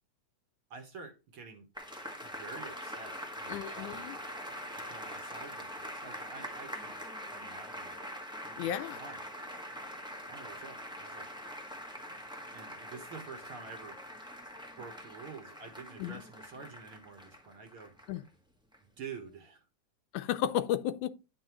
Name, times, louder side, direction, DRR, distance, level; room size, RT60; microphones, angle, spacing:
voice 1, 0.7-1.7 2.2-4.1 4.7-8.1 8.4-8.7 9.0-9.2 10.3-11.3 12.1-12.2 12.5-14.0 14.8-17.9 18.8-19.7, right 5 dB, 55° right, 1.8 m, -48 dB
sound 1, 1.7-18.3 18.7-18.8, equal, 5° right, 0.4 m, -44 dB
voice 2, 3.5-4.2 8.6-9.0 16.0-16.2 18.1-18.2 20.1-21.1, left 10 dB, 85° left, 2.1 m, -33 dB
10.5 x 5.5 x 3.0 m
omnidirectional pair, 3.4 m